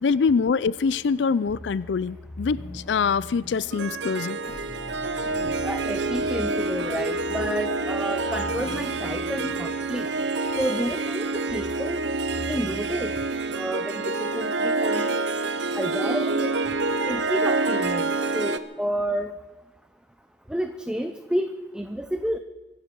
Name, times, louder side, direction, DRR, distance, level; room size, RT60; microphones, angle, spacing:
voice 1, 0.0-4.4, left 5 dB, 80° left, 19 dB, 0.4 m, -24 dB
sound 1, 0.7-13.2, left 1 dB, 55° left, 2.3 m, -42 dB
Harp, 3.7-18.6, right 3 dB, 80° right, 0.9 m, -27 dB
voice 2, 5.6-10.1 10.6-12.0 12.5-13.1 13.5-15.1 15.7-16.6 17.1-19.3 20.5-22.4, right 1 dB, 5° right, 8 dB, 0.7 m, -30 dB
24.0 x 11.5 x 5.3 m, 1.1 s
head